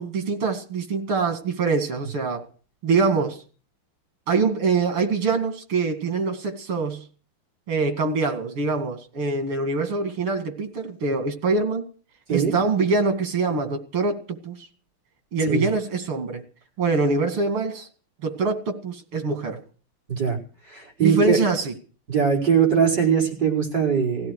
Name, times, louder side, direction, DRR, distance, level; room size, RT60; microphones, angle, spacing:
voice 1, 0.0-2.5 2.8-3.4 4.3-7.0 7.7-11.9 12.3-14.7 15.3-16.4 16.8-17.9 18.2-19.6 21.0-21.7, right 4 dB, 90° right, 3.2 m, -24 dB
voice 2, 20.7-21.4 22.1-24.3, right 7 dB, 50° right, 5.6 m, -21 dB
17.5 x 16.5 x 4.9 m
omnidirectional pair, 2.3 m